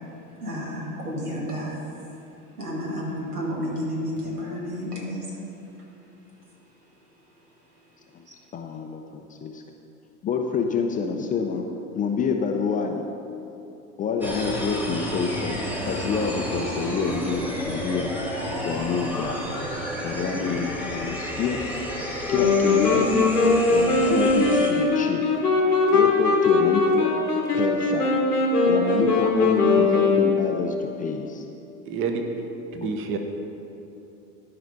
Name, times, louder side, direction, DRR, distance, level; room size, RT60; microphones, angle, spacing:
voice 1, 0.4-1.8 2.6-5.3, equal, 85° right, -3 dB, 2.1 m, -31 dB
voice 2, 8.5-9.6 10.2-11.7 11.9-13.0 14.0-18.1 18.6-19.4 20.0-21.7 22.3-23.4 23.7-25.2 25.9-27.2 27.5-28.1 28.7-31.4, left 5 dB, 20° left, 3 dB, 0.4 m, -27 dB
sound 1, 14.2-24.7, equal, 5° right, 1.4 m, -31 dB
sound 2, 22.3-30.7, left 3 dB, 90° left, 1.3 m, -21 dB
voice 3, 31.9-33.2, right 4 dB, 30° right, 5 dB, 0.8 m, -29 dB
12.5 x 5.0 x 5.3 m, 2.9 s
figure-of-eight pair, 80°, 45 cm